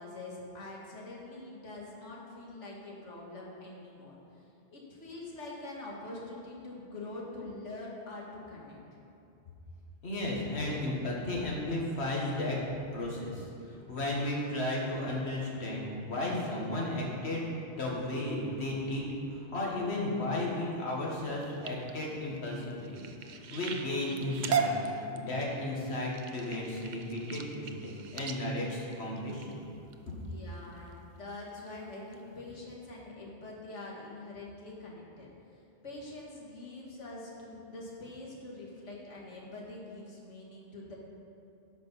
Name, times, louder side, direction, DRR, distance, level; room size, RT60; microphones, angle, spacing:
voice 1, 0.0-4.4 4.7-8.8 30.3-35.3 35.8-40.9, left 2 dB, 85° left, -3 dB, 2.0 m, -44 dB
voice 2, 10.0-12.6 12.9-23.0 23.5-24.7 25.1-29.6, left 1 dB, 65° left, -3 dB, 1.9 m, -34 dB
sound 1, 21.3-29.9 30.5-30.9 31.3-31.7 32.1-32.2 32.5-32.6, right 5 dB, 55° right, 0.6 m, -37 dB
12.5 x 5.3 x 5.5 m, 2.7 s
omnidirectional pair, 1.2 m